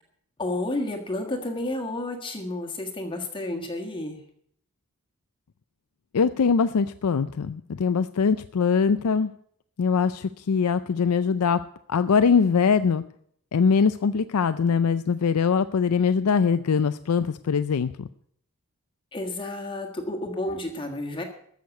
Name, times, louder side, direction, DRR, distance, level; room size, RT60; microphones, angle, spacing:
voice 1, 0.4-4.2 19.1-21.2, left 1 dB, 20° left, 2 dB, 1.5 m, -31 dB
voice 2, 6.1-9.3 9.8-11.6 11.9-13.0 13.5-18.1, left 5 dB, 85° left, 12 dB, 0.5 m, -22 dB
14.0 x 6.6 x 8.2 m, 0.66 s
head